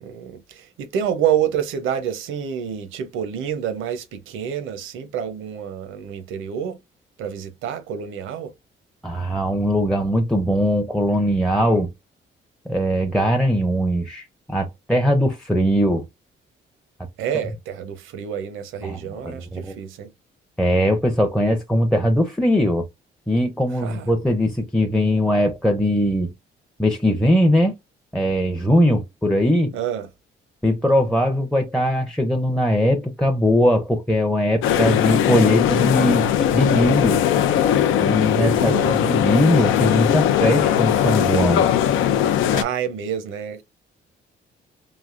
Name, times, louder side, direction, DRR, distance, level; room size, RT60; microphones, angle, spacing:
voice 1, 0.0-6.8 7.2-8.5 17.2-20.1 23.8-24.1 29.7-30.1 38.6-39.1 42.5-43.6, right 9 dB, 85° right, 0.7 m, -28 dB
voice 2, 9.0-11.9 12.7-16.0 18.8-19.7 20.6-22.9 23.3-26.3 26.8-27.7 28.1-29.7 30.6-37.2 38.0-41.6, equal, 5° left, 0.5 m, -20 dB
sound 1, 34.6-42.6, left 10 dB, 85° left, 0.5 m, -19 dB
3.3 x 2.5 x 2.4 m
cardioid pair, 90°, 20 cm